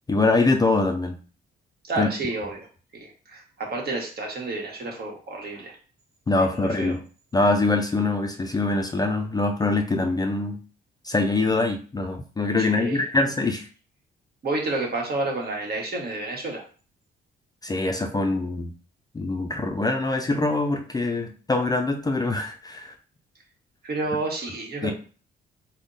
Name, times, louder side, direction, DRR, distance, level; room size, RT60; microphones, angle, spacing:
voice 1, 0.1-1.2 2.0-2.1 6.3-7.0 7.3-10.6 11.0-13.7 17.6-18.7 19.1-22.9 24.8-24.9, left 2 dB, 20° left, 5 dB, 0.4 m, -24 dB
voice 2, 1.8-2.7 2.9-5.8 6.5-6.9 12.6-13.0 14.4-16.6 23.8-24.9, right 2 dB, 50° right, 0 dB, 1.2 m, -30 dB
3.5 x 2.1 x 3.8 m, 0.38 s
cardioid pair, 90°, 20 cm